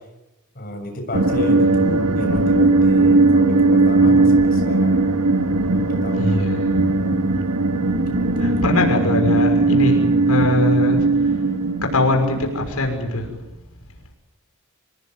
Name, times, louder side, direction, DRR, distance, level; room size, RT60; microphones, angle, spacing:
voice 1, 0.6-5.0 5.7-7.2 8.1-8.7, left 1 dB, 45° left, 3 dB, 7.0 m, -32 dB
sound 1, 1.1-13.1, right 3 dB, 85° right, 2.0 m, -18 dB
voice 2, 6.1-6.8 8.4-11.0 11.8-13.3, left 2 dB, 85° left, 2 dB, 6.1 m, -22 dB
26.5 x 19.5 x 9.4 m, 0.97 s
head